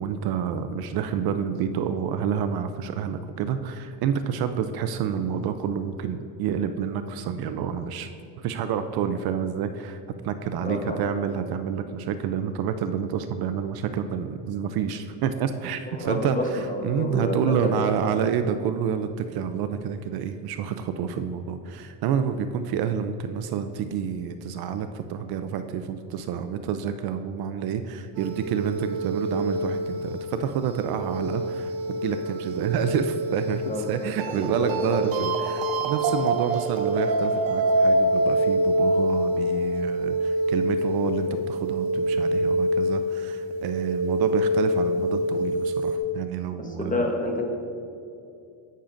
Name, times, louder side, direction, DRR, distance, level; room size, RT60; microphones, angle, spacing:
voice 1, 0.0-8.1 8.4-47.0, right 7 dB, 55° right, 9 dB, 0.5 m, -28 dB
voice 2, 10.6-11.1 15.9-18.1 33.6-34.1 34.4-35.0 46.6-47.4, left 1 dB, 20° left, 2 dB, 1.1 m, -29 dB
sound 1, 28.2-46.0, right 1 dB, 85° right, 0.9 m, -26 dB
11.0 x 8.6 x 2.6 m, 2.6 s
cardioid pair, 120°, 44 cm